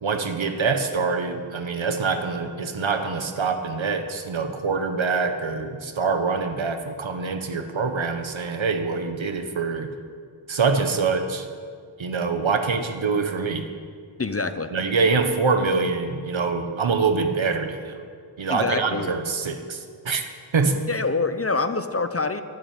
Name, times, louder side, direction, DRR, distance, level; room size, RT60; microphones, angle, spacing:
voice 1, 0.0-9.9 10.5-11.5 12.0-13.7 14.7-18.0 18.4-20.8, right 4 dB, 70° right, 7 dB, 1.5 m, -25 dB
voice 2, 14.2-14.7 18.5-19.1 20.9-22.4, left 3 dB, 30° left, 10 dB, 0.8 m, -25 dB
12.5 x 12.0 x 9.1 m, 2.1 s
wide cardioid pair, 90°, 49 cm